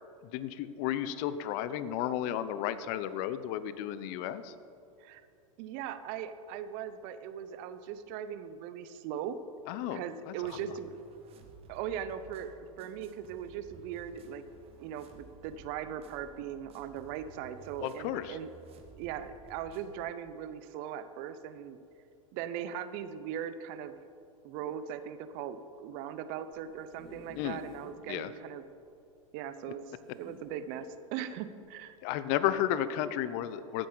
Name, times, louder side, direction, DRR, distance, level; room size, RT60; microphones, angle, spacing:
voice 1, 0.2-4.5 9.7-10.6 17.8-18.4 27.4-27.6 28.1-28.3 32.0-33.9, left 11 dB, 50° left, 14 dB, 0.6 m, -33 dB
voice 2, 5.6-9.4 9.9-10.9 11.7-14.4 14.8-18.5 19.0-21.8 22.3-23.9 24.4-28.6 29.3-32.0, right 9 dB, 50° right, 12 dB, 0.7 m, -39 dB
sound 1, 10.4-20.0, right 4 dB, 35° right, 1.3 m, -55 dB
sound 2, 26.5-28.0 28.5-28.6 28.8-28.9 30.0-30.9 31.6-31.8, equal, 5° left, 1.9 m, -53 dB
14.0 x 8.6 x 3.9 m, 2.6 s
hypercardioid pair, 105°, 18 cm